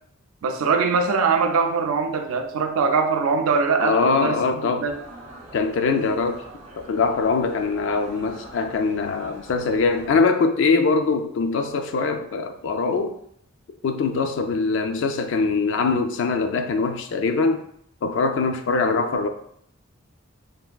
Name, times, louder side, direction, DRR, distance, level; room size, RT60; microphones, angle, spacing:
voice 1, 0.4-5.0, right 5 dB, 85° right, 5 dB, 0.4 m, -22 dB
voice 2, 3.8-4.9 5.5-6.5 6.8-13.2 13.8-17.6 18.0-19.3, left 4 dB, 60° left, 7 dB, 0.3 m, -22 dB
sound 1, 4.9-10.2, right 2 dB, 35° right, 0.6 m, -43 dB
3.3 x 2.4 x 2.2 m, 0.69 s
head